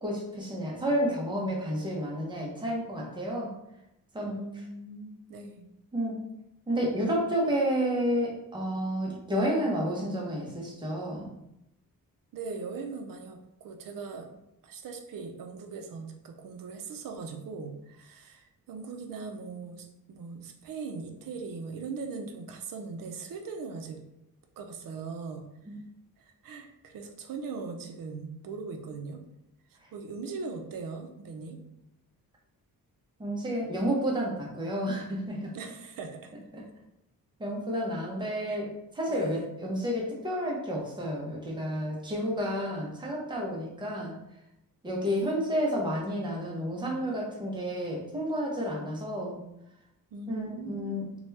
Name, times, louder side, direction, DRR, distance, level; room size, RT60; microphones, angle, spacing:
voice 1, 0.0-3.5 4.1-4.4 5.9-6.2 6.7-11.3 25.7-25.8 33.2-35.5 36.5-36.6 37.4-44.2 44.8-49.4 50.3-51.1, equal, 15° right, -3 dB, 0.6 m, -30 dB
voice 2, 4.2-5.7 12.3-14.3 14.6-24.0 24.6-25.5 26.2-29.2 29.7-31.6 35.5-36.3 38.5-38.6 39.1-39.5 45.0-45.4 50.1-51.1, right 4 dB, 65° right, 4 dB, 0.5 m, -40 dB
2.8 x 2.2 x 3.2 m, 0.85 s
wide cardioid pair, 165°, 36 cm